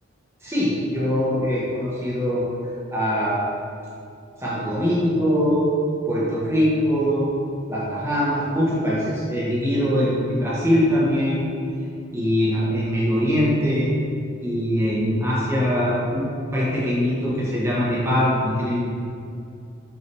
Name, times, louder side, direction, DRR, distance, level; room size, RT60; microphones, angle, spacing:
voice 1, 0.4-2.5 2.9-3.5 4.4-5.7 6.1-7.3 7.7-11.5 12.1-13.9 14.4-16.3 16.5-18.8, equal, 15° right, -7 dB, 1.5 m, -22 dB
6.9 x 6.2 x 3.6 m, 2.5 s
head